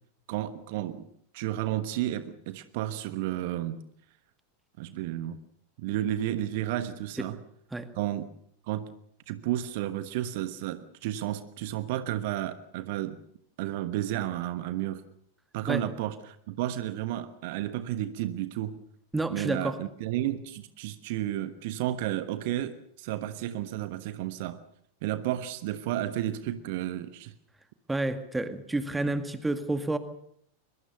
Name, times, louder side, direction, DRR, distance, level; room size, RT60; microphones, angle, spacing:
voice 1, 0.3-1.1 1.3-3.8 4.8-5.4 5.8-7.4 7.9-8.3 8.7-8.9 9.3-13.2 13.6-15.0 15.5-18.8 19.3-24.6 25.0-27.3, right 13 dB, 50° right, 12 dB, 1.2 m, -32 dB
voice 2, 19.1-19.8 27.9-30.0, right 2 dB, 10° right, 10 dB, 2.0 m, -29 dB
22.5 x 22.0 x 6.8 m, 0.67 s
figure-of-eight pair, 90°, 0 cm